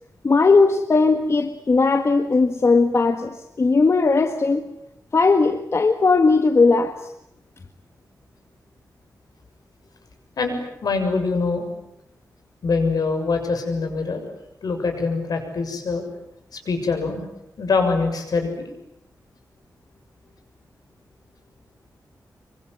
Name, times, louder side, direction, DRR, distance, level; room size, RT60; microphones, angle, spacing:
voice 1, 0.2-4.6 5.1-7.0, left 4 dB, 40° left, 7 dB, 1.7 m, -18 dB
voice 2, 10.4-11.7 12.6-14.3 14.6-16.0 16.5-17.2 17.6-18.7, left 4 dB, 75° left, 5 dB, 6.8 m, -24 dB
25.5 x 24.5 x 9.7 m, 0.79 s
wide cardioid pair, 120°, 7 cm